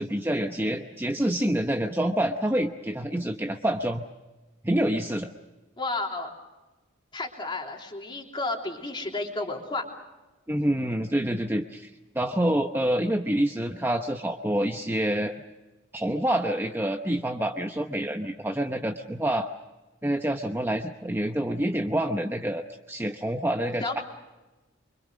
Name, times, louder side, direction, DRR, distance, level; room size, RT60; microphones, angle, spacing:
voice 1, 0.0-4.0 4.6-5.3 10.5-11.9 12.1-15.3 15.9-19.5 20.0-24.0, right 1 dB, 10° right, 4 dB, 0.9 m, -27 dB
voice 2, 5.8-6.3 7.1-9.8 23.8-24.0, left 2 dB, 25° left, 1 dB, 3.4 m, -32 dB
25.5 x 24.5 x 6.4 m, 1.1 s
head